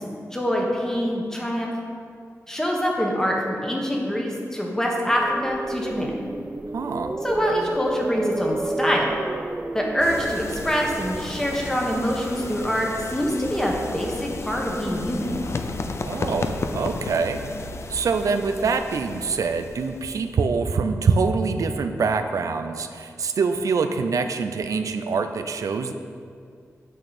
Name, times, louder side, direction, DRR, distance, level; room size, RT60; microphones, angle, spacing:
voice 1, 0.3-1.7 2.5-6.2 7.2-9.2 9.7-15.3, equal, 10° left, -1 dB, 1.3 m, -25 dB
sound 1, 5.0-13.1, right 2 dB, 20° right, 0.3 m, -31 dB
voice 2, 6.7-7.2 16.0-17.4 17.9-25.9, right 4 dB, 80° right, 7 dB, 0.5 m, -24 dB
sound 2, 10.0-20.3, left 3 dB, 55° left, 0.5 m, -34 dB
9.1 x 6.4 x 4.2 m, 2.3 s
wide cardioid pair, 120°, 6 cm